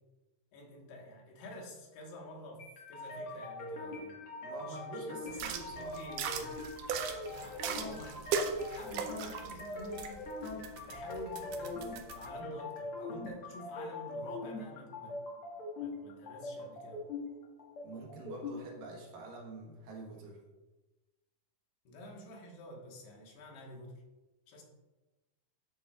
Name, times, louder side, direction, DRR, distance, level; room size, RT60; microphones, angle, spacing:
voice 1, 0.5-4.2 4.6-6.6 7.3-10.3 10.9-15.2 15.8-17.0 21.9-24.0 24.5-24.6, left 1 dB, 80° left, -1 dB, 3.5 m, -49 dB
sound 1, 2.6-18.6, left 2 dB, 50° left, 1.8 m, -42 dB
voice 2, 4.4-6.0 17.8-20.4, right 2 dB, 65° right, -1 dB, 2.7 m, -46 dB
sound 2, 5.3-12.3, right 6 dB, 85° right, 1.9 m, -39 dB
13.0 x 7.2 x 2.4 m, 1.1 s
omnidirectional pair, 4.5 m